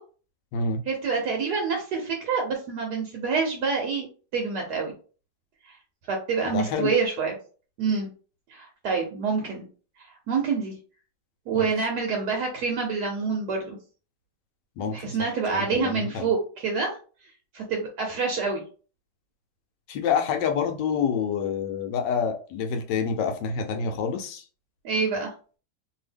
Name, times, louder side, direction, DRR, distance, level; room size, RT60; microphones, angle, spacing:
voice 1, 0.9-4.1 4.3-4.9 6.1-7.3 7.8-8.1 8.5-9.6 10.0-10.7 11.5-13.8 14.8-17.0 17.5-18.6 24.8-25.3, right 5 dB, 75° right, 1 dB, 1.2 m, -27 dB
voice 2, 6.4-6.9 11.6-11.7 14.8-15.1 15.5-16.3 19.9-24.4, left 6 dB, 85° left, 6 dB, 1.3 m, -27 dB
2.7 x 2.7 x 3.3 m, 0.39 s
omnidirectional pair, 1.8 m